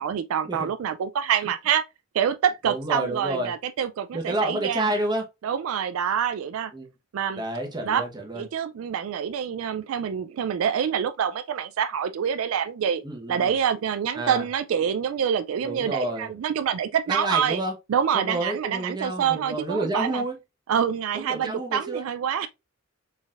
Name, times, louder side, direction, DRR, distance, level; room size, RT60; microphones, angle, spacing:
voice 1, 0.0-1.8 2.1-4.9 5.4-6.7 7.1-7.4 7.8-8.0 8.3-13.0 13.3-17.6 17.9-20.2 20.7-22.5, right 8 dB, 75° right, 0.3 m, -26 dB
voice 2, 2.7-3.5 4.1-5.2 6.7-6.9 7.4-8.4 13.0-13.5 14.2-14.4 15.6-16.3 17.1-17.7 18.1-20.4 21.1-22.1, right 1 dB, 20° right, 1.0 m, -29 dB
4.0 x 3.9 x 2.4 m
head